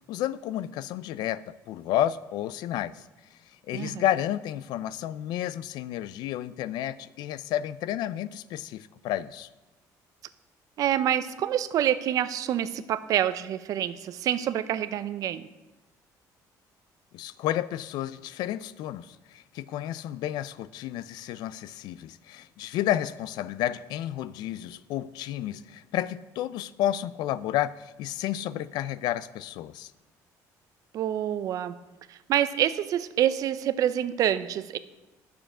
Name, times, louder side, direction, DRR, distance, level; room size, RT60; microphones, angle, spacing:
voice 1, 0.1-3.0 3.7-9.5 17.1-29.9, left 12 dB, 80° left, 0.4 m, -31 dB
voice 2, 3.7-4.0 10.8-15.5 30.9-31.8 32.1-34.8, right 11 dB, 55° right, 0.5 m, -27 dB
10.0 x 6.9 x 6.0 m
cardioid pair, 145°, 7 cm